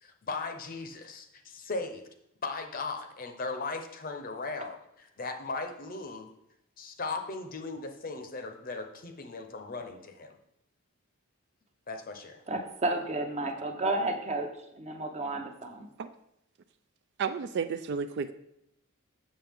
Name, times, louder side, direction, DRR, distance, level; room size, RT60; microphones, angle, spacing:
voice 1, 0.0-2.0 2.4-4.8 5.2-6.3 6.8-10.4 11.9-12.4, left 3 dB, 40° left, 6 dB, 0.7 m, -37 dB
voice 2, 12.5-15.9, right 2 dB, 30° right, 4 dB, 0.8 m, -32 dB
voice 3, 17.2-18.3, right 6 dB, 50° right, 11 dB, 0.3 m, -32 dB
7.4 x 6.7 x 3.5 m, 0.79 s
head